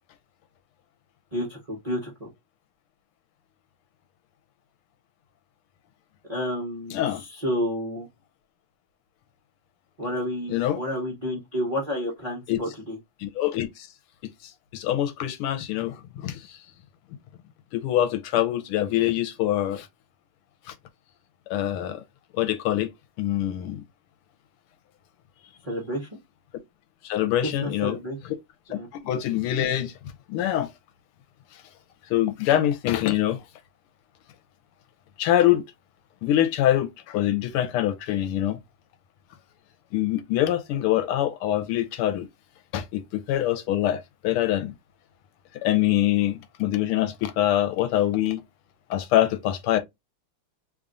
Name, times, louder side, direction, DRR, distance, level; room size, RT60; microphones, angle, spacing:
voice 1, 1.3-2.3 6.3-8.1 10.0-13.0 25.7-26.1 27.6-28.2 28.7-28.9, equal, 30° right, 0.7 m, -30 dB
voice 2, 6.9-7.2 10.5-10.8 12.5-12.6 13.2-13.9 14.2-16.6 17.7-19.9 20.7-20.8 21.5-22.0 22.3-22.9 23.2-23.8 27.0-28.0 28.2-28.4 28.7-28.8 29.0-29.9 30.3-30.7 32.1-33.4 35.2-35.6 36.2-38.6 39.9-42.3 42.7-44.8 45.6-48.4 48.9-49.8, left 12 dB, 90° left, 1.6 m, -24 dB
3.5 x 2.4 x 3.8 m
omnidirectional pair, 2.4 m